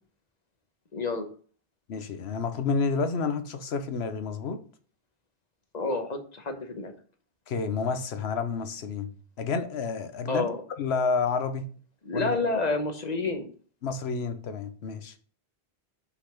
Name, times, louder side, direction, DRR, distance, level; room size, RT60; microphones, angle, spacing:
voice 1, 0.9-1.3 5.7-6.9 10.3-10.6 12.0-13.5, left 3 dB, 40° left, 1.1 m, -29 dB
voice 2, 1.9-4.6 7.5-9.1 9.4-10.5 10.8-11.7 12.1-12.4 13.8-15.1, left 5 dB, 80° left, 1.1 m, -29 dB
5.9 x 4.0 x 5.7 m
omnidirectional pair, 1.1 m